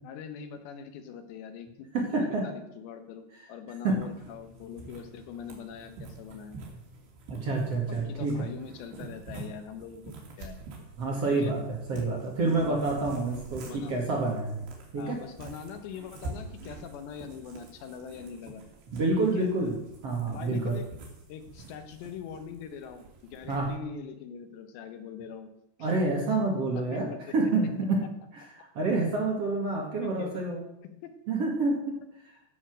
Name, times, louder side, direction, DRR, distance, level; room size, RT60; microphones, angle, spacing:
voice 1, 0.0-1.9 2.1-6.6 7.9-10.6 11.4-11.5 12.4-12.8 13.6-13.9 15.0-18.6 19.3-19.5 20.3-20.9 21.3-25.5 25.8-25.9 26.8-27.3 30.0-30.4 30.8-31.1, left 7 dB, 85° left, 8 dB, 3.4 m, -42 dB
voice 2, 1.9-2.5 3.8-4.0 7.3-8.3 11.0-11.6 11.9-14.6 14.9-15.2 18.9-20.8 23.5-23.7 25.8-28.0 28.3-30.6 31.3-32.0, right 3 dB, 45° right, -1 dB, 2.5 m, -28 dB
sound 1, 3.9-23.8, right 3 dB, 85° right, 4.9 m, -47 dB
15.0 x 7.2 x 6.2 m, 0.80 s
omnidirectional pair, 4.9 m